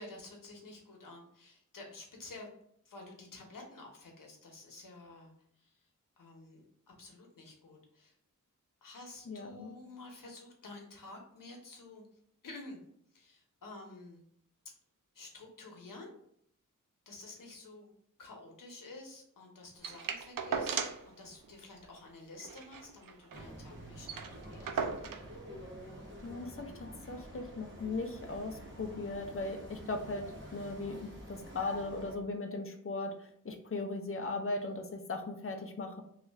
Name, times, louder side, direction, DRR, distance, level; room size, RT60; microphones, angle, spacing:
voice 1, 0.0-2.5 2.8-5.8 6.2-6.7 7.0-8.1 8.8-12.0 12.4-12.8 13.1-14.2 15.1-16.1 17.1-17.9 18.2-20.8 21.1-24.9, left 2 dB, 80° left, 1 dB, 0.9 m, -50 dB
voice 2, 9.3-9.7 26.2-30.3 30.5-36.0, left 3 dB, 40° left, 5 dB, 0.5 m, -38 dB
sound 1, 19.8-21.1 21.4-21.5 21.8-22.0 22.4-23.5 23.8-23.9 24.0-25.3 26.2-26.3, right 6 dB, 90° right, 0.5 m, -37 dB
sound 2, 23.3-32.2, equal, 35° right, 0.9 m, -48 dB
3.1 x 2.4 x 3.4 m, 0.69 s
wide cardioid pair, 95°, 32 cm